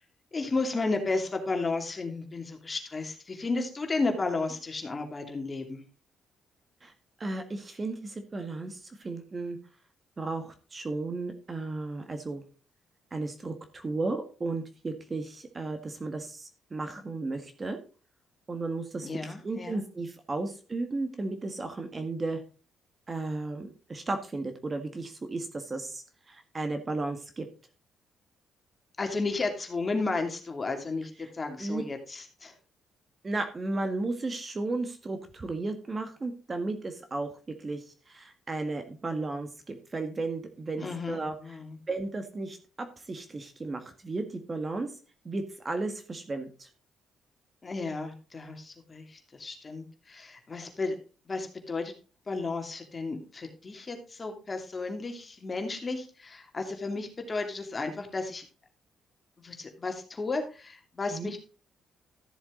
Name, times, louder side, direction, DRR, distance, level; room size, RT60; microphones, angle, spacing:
voice 1, 0.3-5.8 19.0-19.8 29.0-31.1 31.4-32.5 40.8-41.8 47.6-49.0 49.4-51.0 51.3-51.9 52.3-58.4 59.4-61.4, left 3 dB, 30° left, 4 dB, 2.7 m, -33 dB
voice 2, 7.2-9.6 10.2-12.4 13.1-17.8 18.5-22.4 23.1-27.5 31.2-31.3 31.6-31.8 33.2-37.3 37.6-41.6 41.9-44.9 45.2-46.7 61.1-61.3, right 3 dB, 30° right, 7 dB, 1.7 m, -34 dB
13.5 x 7.2 x 3.8 m, 0.36 s
cardioid pair, 90°, 0 cm